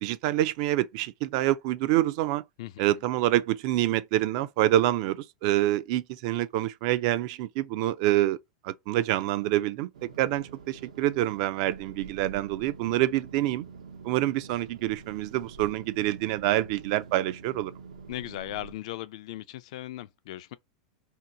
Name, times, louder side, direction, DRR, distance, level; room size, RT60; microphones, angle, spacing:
voice 1, 0.0-2.4 2.8-8.4 8.6-13.6 14.0-17.7, right 14 dB, 55° right, 0.4 m, -26 dB
voice 2, 2.6-3.0 18.1-20.6, left 14 dB, 70° left, 0.3 m, -38 dB
sound 1, 9.9-18.8, right 5 dB, 85° right, 0.7 m, -47 dB
2.8 x 2.2 x 3.8 m
hypercardioid pair, 120°, 4 cm